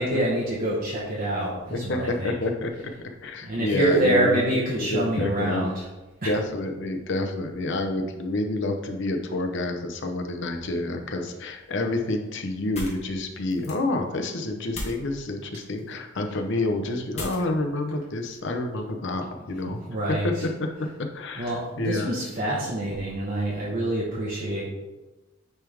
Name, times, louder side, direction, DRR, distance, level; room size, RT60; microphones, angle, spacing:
voice 1, 0.0-2.3 2.7-2.8 3.4-5.8 6.2-6.4 19.4-20.5 20.8-20.9 21.3-24.7, right 1 dB, 45° right, -6 dB, 1.0 m, -27 dB
voice 2, 1.7-2.7 3.2-5.7 6.2-19.8 20.1-20.7 21.0-22.1, left 2 dB, 60° left, 4 dB, 0.7 m, -28 dB
sound 1, 11.5-19.0, left 1 dB, 30° left, 1.4 m, -42 dB
9.3 x 3.4 x 3.4 m, 1.1 s
head